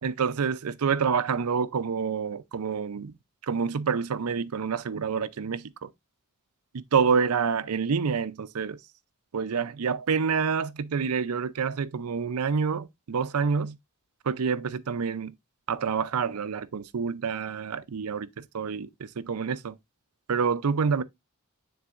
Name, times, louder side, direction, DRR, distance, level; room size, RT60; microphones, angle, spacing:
voice 1, 0.0-3.1 3.4-5.9 6.7-8.8 9.3-13.8 14.2-15.3 15.7-19.8 20.3-21.0, right 6 dB, 80° right, 0.5 m, -27 dB
9.6 x 4.0 x 2.4 m
head